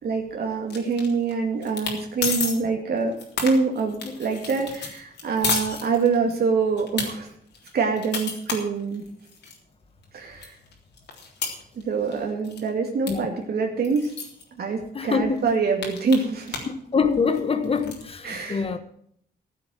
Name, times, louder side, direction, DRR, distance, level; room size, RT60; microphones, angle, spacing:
voice 1, 0.0-3.2 3.4-7.3 7.7-9.0 10.1-10.6 11.7-14.1 14.5-16.7 18.2-18.7, right 4 dB, 65° right, 2.2 m, -25 dB
sound 1, 0.7-1.3 1.6-2.0 2.2-2.5 3.0-6.4 6.8-7.1 7.5-9.6 10.0-10.1 10.4-12.2 12.4-12.7 13.1-13.2 13.4-13.5 13.8-14.4 15.0-15.1 15.4-16.8 17.1-18.0, left 5 dB, 85° left, 3.6 m, -31 dB
voice 2, 14.9-15.4 16.9-18.8, left 5 dB, 35° left, 1.4 m, -24 dB
15.5 x 7.6 x 7.7 m
wide cardioid pair, 140°, 17 cm